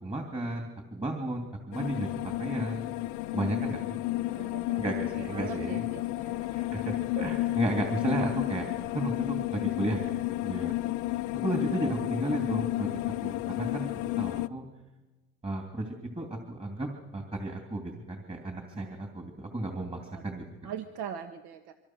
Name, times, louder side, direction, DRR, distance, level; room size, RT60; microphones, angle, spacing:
voice 1, 0.0-2.9 3.3-4.0 4.3-4.5 4.8-5.8 6.4-8.6 8.9-10.7 11.3-12.9 13.2-13.9 14.2-14.6 15.4-20.4, right 2 dB, 20° right, 2 dB, 3.0 m, -34 dB
sound 1, 1.7-14.5, left 18 dB, 70° left, 0.8 m, -32 dB
voice 2, 4.2-4.9 5.1-6.4 7.4-7.7 18.8-19.0 20.1-20.2 20.6-21.7, right 8 dB, 65° right, 6 dB, 1.5 m, -42 dB
26.0 x 25.0 x 6.3 m, 1.2 s
cardioid pair, 135°, 32 cm